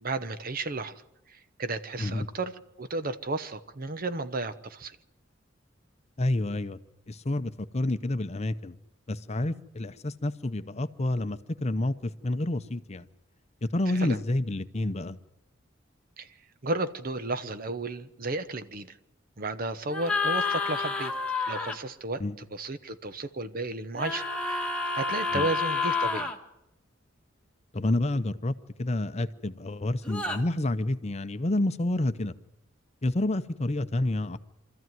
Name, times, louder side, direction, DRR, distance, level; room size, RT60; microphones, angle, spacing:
voice 1, 0.0-1.0 1.3-5.0 13.9-14.2 16.2-16.3 16.6-19.0 19.4-21.1 21.5-26.3, right 2 dB, 45° right, 12 dB, 1.0 m, -33 dB
voice 2, 6.2-6.8 7.1-8.8 9.1-13.1 13.6-15.2 22.2-22.3 25.3-25.5 27.7-32.3 33.0-34.4, left 1 dB, 35° left, 11 dB, 0.7 m, -29 dB
sound 1, 19.9-21.8 23.9-26.4 30.0-30.4, left 4 dB, 5° left, 1.6 m, -29 dB
25.0 x 14.0 x 9.3 m, 0.87 s
head